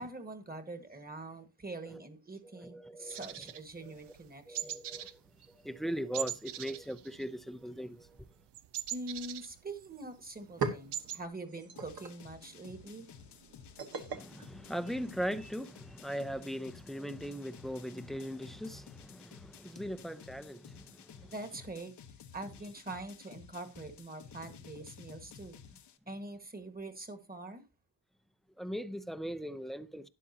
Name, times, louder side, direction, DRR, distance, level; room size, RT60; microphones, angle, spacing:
voice 1, 0.0-4.8 8.9-13.1 21.2-21.9 22.3-25.6 26.1-27.6, right 2 dB, 20° right, 1.6 m, -44 dB
voice 2, 2.4-3.3 3.8-3.9 4.5-5.2 5.5-8.3 14.1-21.3 28.6-30.1, equal, ahead, 0.6 m, -40 dB
sound 1, 3.1-4.2 4.5-5.2 5.4-5.7 6.1-7.7 7.9-10.0 10.4-10.5 10.7-11.2, right 12 dB, 90° right, 0.7 m, -41 dB
sound 2, 9.9-10.0 10.3-15.5, right 5 dB, 60° right, 1.7 m, -42 dB
sound 3, 11.8-26.0, left 8 dB, 80° left, 1.1 m, -54 dB
12.0 x 10.0 x 2.8 m
wide cardioid pair, 130°, 40 cm